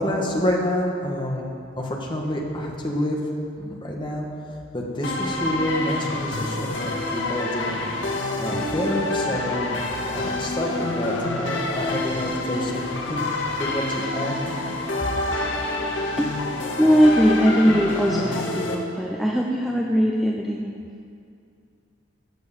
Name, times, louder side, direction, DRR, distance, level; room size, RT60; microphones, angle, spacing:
voice 1, 0.0-1.5 1.8-3.2 3.6-4.3 4.7-7.9 8.4-10.7 11.0-13.3 13.6-13.8 14.1-14.3, left 1 dB, 25° left, -1 dB, 1.9 m, -28 dB
sound 1, 5.0-18.7, left 2 dB, 70° left, 1.7 m, -27 dB
voice 2, 16.8-20.7, equal, ahead, -2 dB, 0.7 m, -20 dB
15.5 x 6.9 x 8.3 m, 2.4 s
head